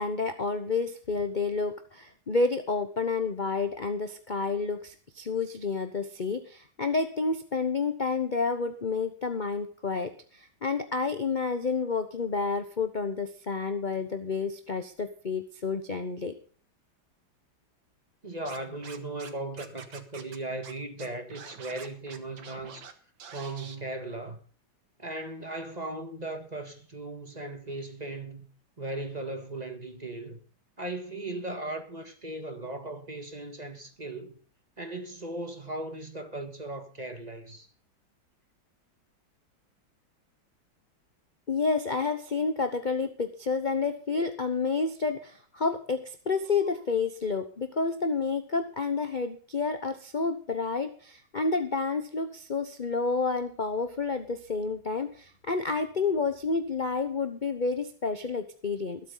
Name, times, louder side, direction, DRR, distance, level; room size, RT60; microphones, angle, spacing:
voice 1, 0.0-16.3 41.5-59.0, left 4 dB, 30° left, 0.9 m, -30 dB
voice 2, 18.2-22.9 23.3-24.4 25.0-28.5 28.8-30.4 30.8-34.3 34.8-37.7, right 2 dB, 20° right, 1.8 m, -37 dB
Scratching (performance technique), 18.4-19.3 19.6-20.4 20.6-20.7 21.0-22.9 23.2-23.8, right 6 dB, 70° right, 2.2 m, -46 dB
21.5 x 8.2 x 4.0 m
omnidirectional pair, 2.2 m